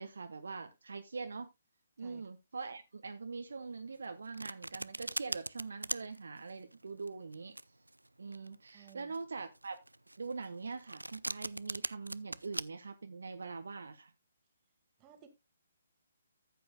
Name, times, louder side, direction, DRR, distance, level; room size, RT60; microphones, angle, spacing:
voice 1, 0.0-1.5 2.0-7.6 8.2-9.8 10.2-14.1, right 4 dB, 60° right, 1.1 m, -43 dB
Domestic sounds home sounds, 3.9-12.6, right 1 dB, 80° right, 0.4 m, -41 dB
voice 2, 8.7-9.1 15.0-15.3, right 10 dB, 20° right, 2.0 m, -57 dB
14.0 x 8.5 x 2.3 m
figure-of-eight pair, 135°, 0 cm